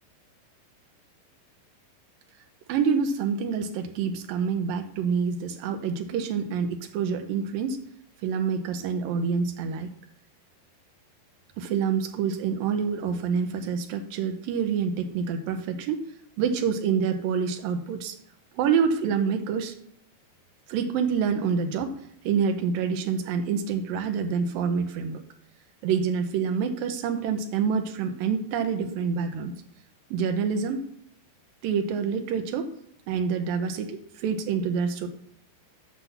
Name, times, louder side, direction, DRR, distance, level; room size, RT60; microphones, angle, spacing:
voice 1, 2.7-7.8 8.2-9.9 11.6-16.0 16.4-18.2 18.6-19.7 20.7-22.0 22.2-25.2 25.8-29.5 30.1-30.9 31.6-32.7 33.1-35.1, right 6 dB, 80° right, 6 dB, 2.1 m, -27 dB
8.2 x 5.7 x 7.1 m, 0.70 s
omnidirectional pair, 5.1 m